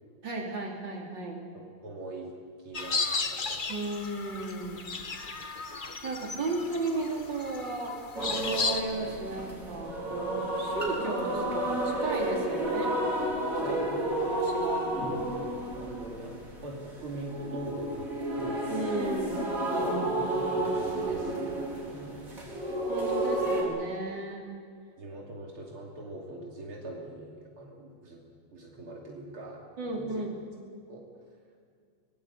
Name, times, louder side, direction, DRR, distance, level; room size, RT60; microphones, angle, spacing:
voice 1, 0.2-1.4 3.7-4.9 6.0-8.0 8.3-13.0 13.7-13.8 14.2-14.8 18.7-20.0 22.9-24.5 29.8-30.4, right 2 dB, 55° right, 0 dB, 3.8 m, -34 dB
voice 2, 1.5-3.6 13.6-14.1 14.7-15.1 15.7-16.4 16.6-19.2 19.7-22.6 25.0-28.2 28.5-30.2 30.9-31.1, right 2 dB, 80° right, -1 dB, 3.6 m, -42 dB
sound 1, 2.7-8.8, left 4 dB, 30° left, 0.9 m, -34 dB
sound 2, 8.1-23.6, right 1 dB, 35° right, 4.9 m, -31 dB
23.0 x 20.5 x 8.2 m, 2.1 s
omnidirectional pair, 2.4 m